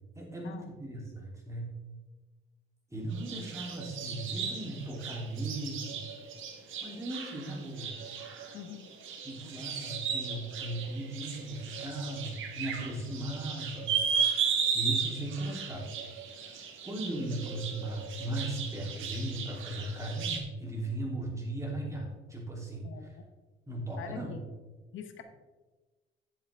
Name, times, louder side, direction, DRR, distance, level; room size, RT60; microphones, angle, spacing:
voice 1, 0.1-1.8 2.9-6.0 6.8-8.0 9.2-13.9 14.7-15.9 16.6-23.1 23.7-24.4, right 1 dB, 15° right, -2 dB, 3.3 m, -37 dB
sound 1, 3.1-20.4, right 6 dB, 80° right, 1.5 m, -36 dB
voice 2, 8.5-8.9 22.8-23.2 24.0-24.4 24.9-25.2, left 7 dB, 80° left, 7 dB, 1.0 m, -44 dB
10.0 x 7.2 x 3.6 m, 1.2 s
cardioid pair, 90°, 20 cm